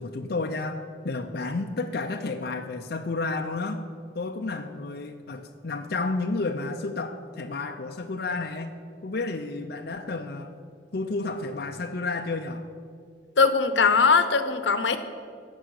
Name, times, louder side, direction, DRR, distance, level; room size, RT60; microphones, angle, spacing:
voice 1, 0.0-3.8 4.1-10.6 10.9-12.7, left 3 dB, 55° left, 4 dB, 0.6 m, -31 dB
voice 2, 13.4-15.0, left 5 dB, 85° left, 10 dB, 0.9 m, -20 dB
17.0 x 6.9 x 6.5 m, 2.3 s
head